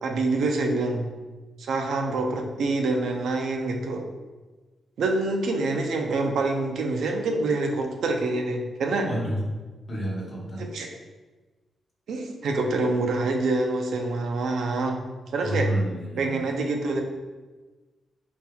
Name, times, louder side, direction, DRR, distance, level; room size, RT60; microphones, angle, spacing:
voice 1, 0.0-1.0 1.6-4.0 5.0-9.1 10.6-10.9 12.1-15.0 15.3-15.7 16.2-17.0, right 2 dB, 80° right, 3 dB, 0.5 m, -26 dB
voice 2, 9.0-9.4 9.9-10.6 15.4-16.5, equal, 40° left, -3 dB, 0.9 m, -29 dB
4.2 x 3.6 x 2.2 m, 1.2 s
wide cardioid pair, 125°, 0 cm